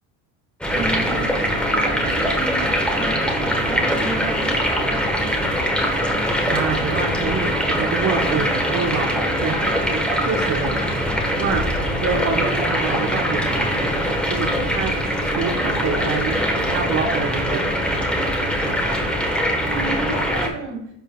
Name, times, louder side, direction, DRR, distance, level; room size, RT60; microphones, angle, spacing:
sound 1, 0.6-20.5, equal, ahead, 1.4 m, -22 dB
voice 1, 0.7-1.3 1.6-5.6 19.7-20.8, right 3 dB, 65° right, -1 dB, 2.5 m, -32 dB
voice 2, 6.3-10.7 11.4-11.7 12.0-13.8 14.3-14.9 15.3-17.6, right 5 dB, 35° right, 1 dB, 0.9 m, -26 dB
10.0 x 5.4 x 2.4 m, 0.76 s
supercardioid pair, 85°, 44 cm